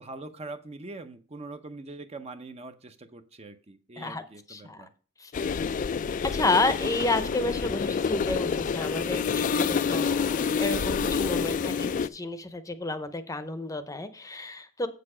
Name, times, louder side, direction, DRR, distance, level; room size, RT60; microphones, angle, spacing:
voice 1, 0.0-4.9, right 2 dB, 30° right, 0.7 m, -43 dB
voice 2, 4.5-4.9 5.2-5.3 6.3-14.9, left 2 dB, 15° left, 0.7 m, -31 dB
sound 1, 5.3-12.1, left 6 dB, 40° left, 0.3 m, -28 dB
7.7 x 6.7 x 4.9 m
head